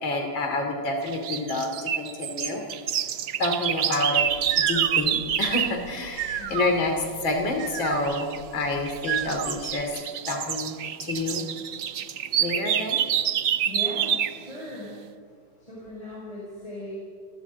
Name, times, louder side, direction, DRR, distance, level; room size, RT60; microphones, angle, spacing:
voice 1, 0.0-2.6 3.0-3.1 3.4-4.3 4.5-6.9 7.2-9.9 10.3-11.5 12.4-13.0, left 2 dB, 65° left, 3 dB, 3.4 m, -28 dB
sound 1, 1.1-5.8 8.0-8.4 8.9-14.4, right 9 dB, 65° right, 0.8 m, -27 dB
sound 2, 4.2-9.8, right 9 dB, 85° right, 2.1 m, -34 dB
voice 2, 6.4-6.7 13.6-15.0 15.6-17.0, left 1 dB, 15° left, -5 dB, 6.8 m, -38 dB
30.0 x 16.0 x 8.4 m, 2.1 s
omnidirectional pair, 2.3 m